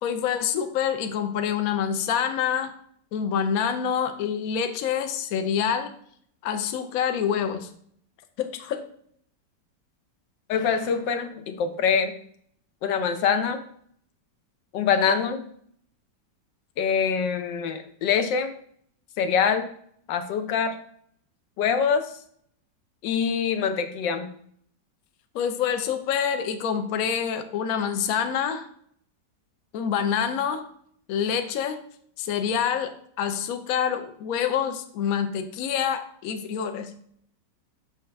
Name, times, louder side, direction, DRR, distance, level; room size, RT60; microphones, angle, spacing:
voice 1, 0.0-2.7 3.1-5.9 6.4-7.7 8.4-8.8 25.3-28.7 29.7-30.6 31.1-31.8 32.2-36.9, left 8 dB, 65° left, 8 dB, 1.0 m, -26 dB
voice 2, 10.5-12.1 12.8-13.6 14.7-15.5 16.8-18.5 19.2-19.7 20.1-20.7 21.6-22.1 23.0-24.3, left 6 dB, 80° left, 8 dB, 1.4 m, -24 dB
6.5 x 3.2 x 5.7 m, 0.64 s
omnidirectional pair, 1.9 m